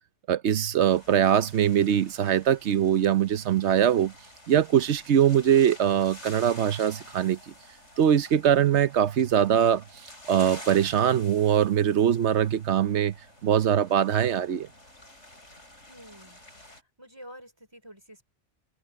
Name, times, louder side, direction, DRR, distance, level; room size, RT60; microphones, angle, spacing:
voice 1, 0.3-4.1 4.5-7.4 8.0-9.8 10.3-13.1 13.4-14.7, right 9 dB, 75° right, 1.0 m, -22 dB
sound 1, 0.8-16.8, left 1 dB, 80° left, 8.5 m, -49 dB
voice 2, 15.9-16.4 17.0-18.2, equal, 20° right, 3.5 m, -48 dB
omnidirectional pair, 1.2 m